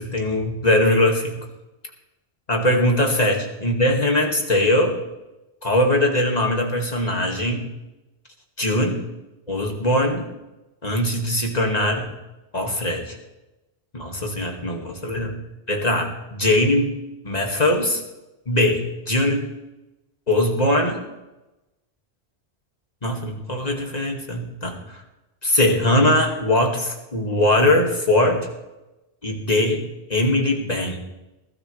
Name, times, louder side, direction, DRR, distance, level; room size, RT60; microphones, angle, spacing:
voice 1, 0.0-1.4 2.5-5.0 5.6-7.7 8.6-9.0 9.5-10.3 10.8-12.1 12.5-13.2 13.9-15.4 15.7-16.9 17.2-18.0 18.5-19.4 20.3-21.0 23.0-25.0 25.4-28.5 29.2-29.8 30.1-31.0, left 1 dB, 40° left, 1 dB, 2.3 m, -21 dB
20.5 x 12.5 x 3.3 m, 0.99 s
omnidirectional pair, 1.1 m